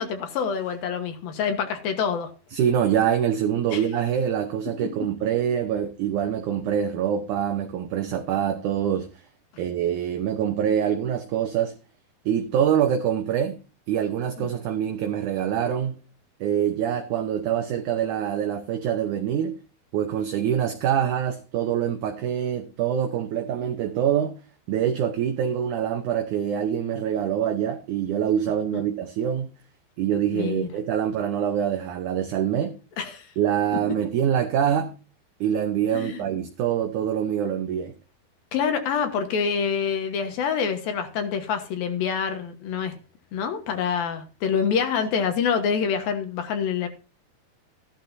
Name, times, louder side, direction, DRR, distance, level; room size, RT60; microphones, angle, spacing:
voice 1, 0.0-2.3 3.7-3.8 14.4-14.5 30.3-30.7 33.0-33.3 35.9-36.2 38.5-43.0 43.3-46.9, left 6 dB, 70° left, 2.9 m, -26 dB
voice 2, 2.5-9.1 9.6-11.7 12.2-13.6 13.9-15.9 16.4-19.5 19.9-24.4 24.7-29.5 30.0-32.7 33.4-34.9 35.4-37.9, right 9 dB, 75° right, 1.9 m, -25 dB
14.5 x 11.5 x 2.7 m
omnidirectional pair, 4.6 m